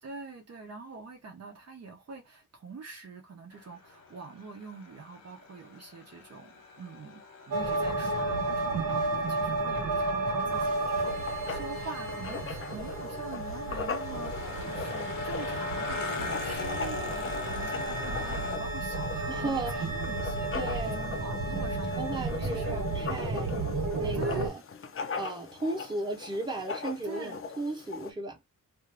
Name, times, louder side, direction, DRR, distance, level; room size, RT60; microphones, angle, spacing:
voice 1, 0.0-22.8 23.3-23.4 24.1-24.6 27.0-27.4, right 4 dB, 50° right, 0.7 m, -45 dB
sound 1, 3.5-18.6, left 4 dB, 90° left, 0.9 m, -43 dB
sound 2, 7.5-24.5, right 2 dB, 80° right, 1.1 m, -32 dB
Writing, 10.5-28.1, left 5 dB, 40° left, 0.5 m, -41 dB
voice 2, 19.3-19.8 20.5-21.0 22.0-23.5 24.0-24.6 25.2-28.4, right 2 dB, 15° right, 0.9 m, -35 dB
2.6 x 2.4 x 3.3 m
wide cardioid pair, 145°, 33 cm